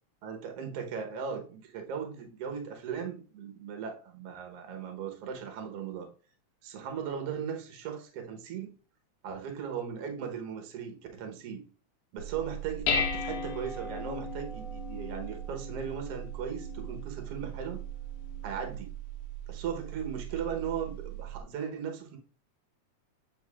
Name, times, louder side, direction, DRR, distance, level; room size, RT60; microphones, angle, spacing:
voice 1, 0.2-6.1 6.6-8.7 9.2-11.6 12.1-17.8 18.4-18.9 19.5-22.2, right 7 dB, 60° right, 1.8 m, -37 dB
Dishes pots and pans, 12.2-21.4, equal, 75° left, 1.8 m, -37 dB
7.9 x 5.0 x 2.4 m
omnidirectional pair, 3.5 m